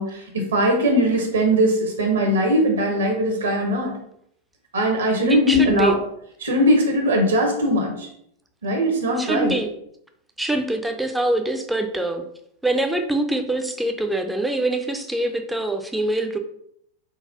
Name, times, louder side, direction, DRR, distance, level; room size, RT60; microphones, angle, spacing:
voice 1, 0.0-3.9 4.7-5.9 6.4-8.1 8.6-9.5, equal, 65° right, 2 dB, 0.8 m, -20 dB
voice 2, 5.3-6.0 9.2-9.7 10.4-12.2 12.6-16.4, right 1 dB, 5° right, 6 dB, 0.4 m, -24 dB
3.9 x 2.3 x 2.7 m, 0.71 s
figure-of-eight pair, 90°, 0 cm